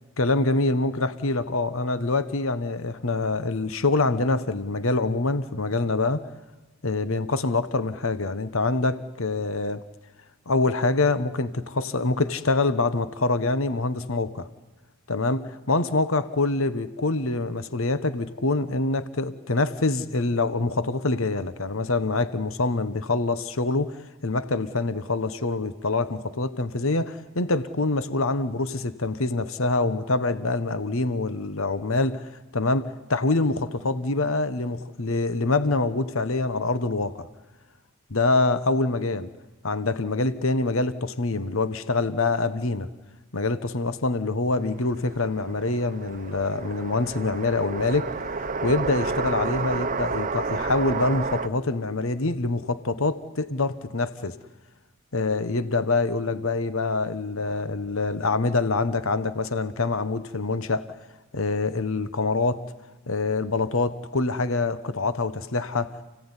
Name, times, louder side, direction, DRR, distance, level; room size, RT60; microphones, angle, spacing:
voice 1, 0.2-6.2 6.8-9.8 10.5-14.5 15.1-23.9 24.2-37.3 38.1-39.3 39.6-42.9 43.3-48.1 48.4-54.4 55.1-61.0 61.3-62.7 63.1-66.0, left 3 dB, 65° left, 13 dB, 1.2 m, -25 dB
sound 1, 44.7-51.5, right 4 dB, 40° right, 0.9 m, -31 dB
29.0 x 17.0 x 9.9 m, 1.2 s
head